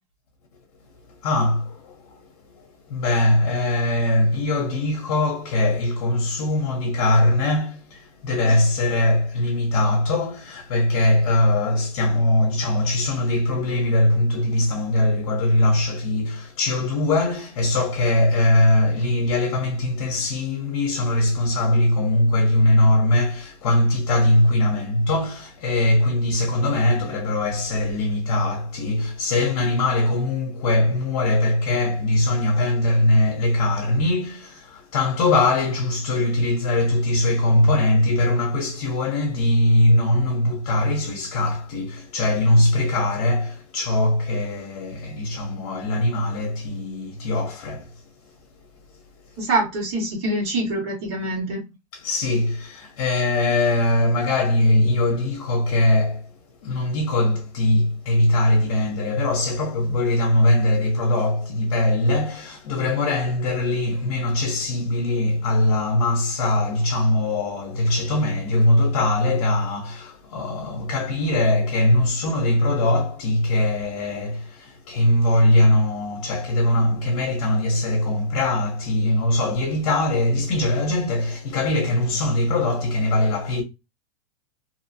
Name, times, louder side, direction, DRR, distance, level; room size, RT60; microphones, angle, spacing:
voice 1, 1.2-47.9 51.9-56.3 56.6-83.6, left 1 dB, 60° left, 0.8 m, -21 dB
voice 2, 49.4-51.6, right 2 dB, 45° right, 1.4 m, -25 dB
2.7 x 2.0 x 2.7 m
supercardioid pair, 165°, 19 cm